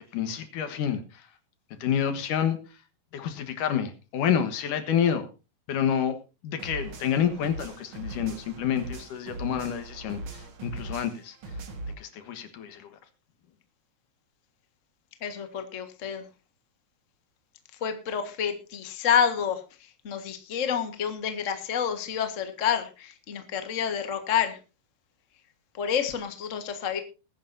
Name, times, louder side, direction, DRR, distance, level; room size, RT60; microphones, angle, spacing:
voice 1, 0.1-1.3 1.8-2.8 3.1-5.3 5.7-6.2 6.4-11.4 12.0-12.9, left 8 dB, 70° left, 9 dB, 2.9 m, -28 dB
sound 1, 6.6-11.9, right 2 dB, 45° right, 2.0 m, -40 dB
voice 2, 15.2-16.2 17.8-19.6 20.0-24.6 25.7-27.0, left 8 dB, 45° left, 7 dB, 0.9 m, -28 dB
20.5 x 10.0 x 2.7 m, 0.30 s
omnidirectional pair, 4.0 m